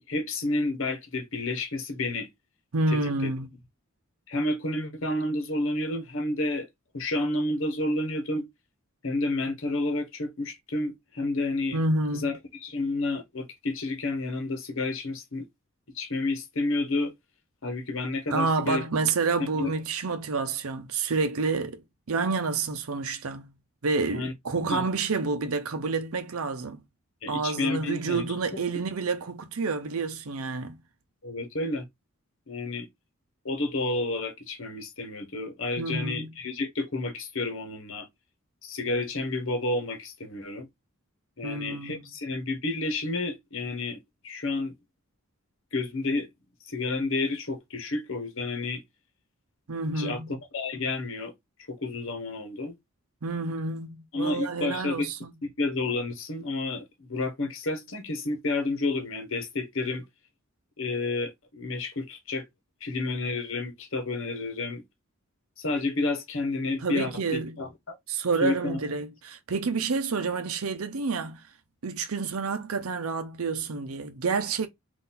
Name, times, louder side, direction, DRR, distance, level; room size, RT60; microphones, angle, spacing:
voice 1, 0.1-2.3 2.9-3.3 4.3-6.7 6.9-8.5 9.0-11.8 12.2-15.4 15.9-17.1 17.6-18.8 19.6-19.7 24.1-24.8 27.2-28.4 28.7-28.8 31.2-31.9 32.5-32.9 33.4-38.1 38.6-40.7 41.4-44.7 45.7-46.3 46.6-48.8 49.9-50.2 50.5-51.3 51.7-52.8 54.1-55.1 55.4-60.0 60.8-62.5 62.8-64.8 65.6-68.0 68.4-68.8, left 2 dB, 65° left, 1.0 m, -30 dB
voice 2, 2.7-3.5 11.7-12.3 18.3-21.8 22.1-23.5 23.8-26.8 27.3-30.8 35.8-36.3 41.4-42.0 49.7-50.3 53.2-55.3 66.8-67.6 68.1-71.4 71.8-74.7, right 4 dB, 80° right, 0.7 m, -29 dB
3.8 x 2.6 x 4.1 m
head